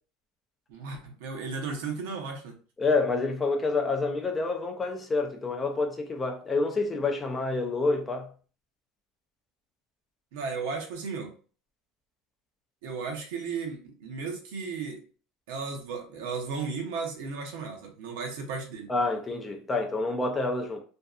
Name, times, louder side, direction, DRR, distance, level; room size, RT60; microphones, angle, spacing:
voice 1, 0.7-2.5 10.3-11.3 12.8-15.0 15.5-18.9, right 5 dB, 80° right, 0.7 m, -35 dB
voice 2, 2.8-8.3 18.9-20.8, left 3 dB, 15° left, 0.3 m, -28 dB
2.5 x 2.2 x 2.3 m
cardioid pair, 170°, 0 cm